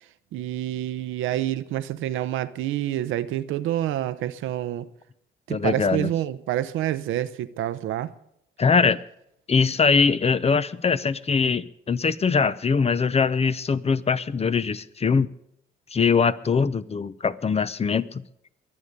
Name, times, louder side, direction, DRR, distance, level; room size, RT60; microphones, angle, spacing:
voice 1, 0.3-4.9 5.5-8.1, right 13 dB, 85° right, 0.8 m, -28 dB
voice 2, 5.5-6.1 8.6-9.0 9.5-15.3 15.9-18.2, left 5 dB, 30° left, 0.7 m, -22 dB
22.5 x 8.6 x 6.7 m
cardioid pair, 90°, 20 cm